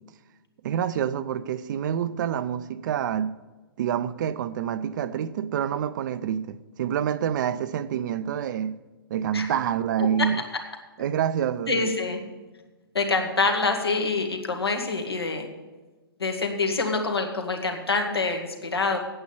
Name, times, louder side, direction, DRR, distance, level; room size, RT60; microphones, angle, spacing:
voice 1, 0.6-3.3 3.8-8.8 9.1-10.4 11.0-12.0, right 9 dB, 50° right, 0.5 m, -27 dB
voice 2, 11.7-12.2 12.9-15.5 16.2-19.0, left 3 dB, 90° left, 1.7 m, -26 dB
8.7 x 7.9 x 7.1 m
hypercardioid pair, 125°, 13 cm